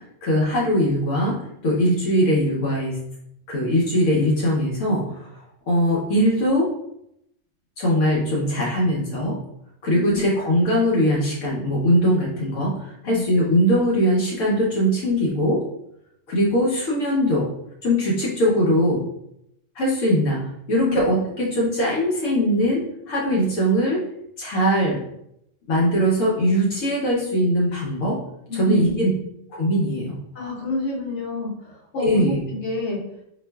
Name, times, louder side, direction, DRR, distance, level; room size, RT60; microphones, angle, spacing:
voice 1, 0.2-1.3 1.6-3.0 3.5-5.3 5.7-6.7 7.8-9.3 9.8-15.6 16.3-17.5 17.8-19.0 19.8-20.4 20.7-24.0 24.4-25.0 25.7-28.2 28.5-29.1 29.5-30.2 32.0-32.4, equal, 85° left, -4 dB, 1.1 m, -21 dB
voice 2, 9.9-10.2 13.0-13.2 20.7-21.0 28.5-28.9 30.3-33.0, left 3 dB, 65° left, -4 dB, 1.2 m, -28 dB
4.0 x 2.5 x 2.2 m, 0.78 s
omnidirectional pair, 1.3 m